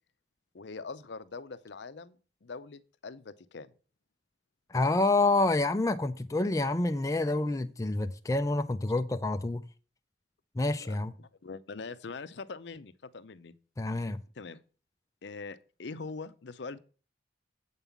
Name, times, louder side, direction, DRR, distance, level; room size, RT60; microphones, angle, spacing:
voice 1, 0.5-3.7 10.8-13.5 14.3-14.6 15.2-16.8, left 4 dB, 65° left, 0.6 m, -43 dB
voice 2, 4.7-9.6 10.6-11.1 13.8-14.2, left 2 dB, 15° left, 0.4 m, -28 dB
8.1 x 5.4 x 7.1 m
head